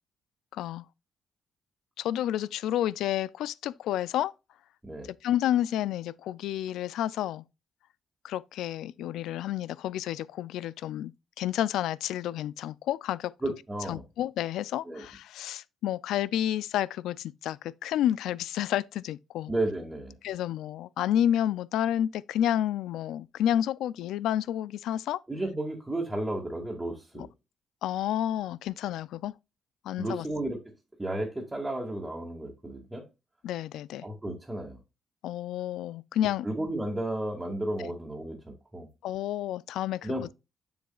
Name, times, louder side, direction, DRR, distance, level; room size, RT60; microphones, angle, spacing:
voice 1, 0.5-0.8 2.0-4.3 5.2-7.4 8.2-11.1 11.4-13.3 13.9-19.5 20.2-25.2 27.2-27.3 27.8-29.3 29.8-30.3 33.4-34.1 35.2-36.5 37.8-37.9 39.0-40.1, left 11 dB, 85° left, 0.3 m, -30 dB
voice 2, 13.4-14.0 14.9-15.1 19.5-20.1 25.3-27.3 30.0-30.6 31.0-33.0 34.0-34.8 36.4-38.9 40.0-40.3, right 1 dB, 15° right, 1.9 m, -33 dB
7.2 x 7.1 x 2.3 m
cardioid pair, 90°, 0 cm